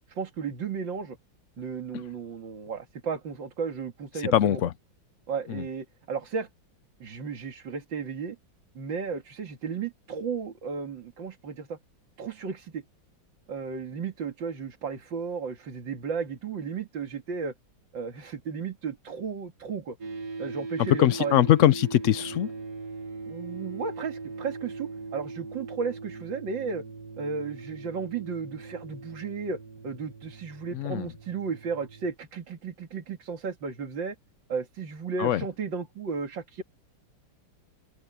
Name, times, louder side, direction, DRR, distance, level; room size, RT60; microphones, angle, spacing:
voice 1, 0.1-1.2 1.6-4.6 5.3-6.5 7.0-8.4 8.7-11.8 12.2-12.8 13.5-17.5 17.9-20.0 20.4-21.4 23.2-26.8 27.2-34.2 34.5-36.6, right 5 dB, 75° right, 2.8 m, -34 dB
voice 2, 4.2-4.7 5.5-5.6 21.0-22.5 30.7-31.1 35.2-35.4, left 12 dB, 85° left, 0.6 m, -22 dB
sound 1, 20.0-32.1, right 4 dB, 50° right, 2.1 m, -40 dB
open air
omnidirectional pair, 2.0 m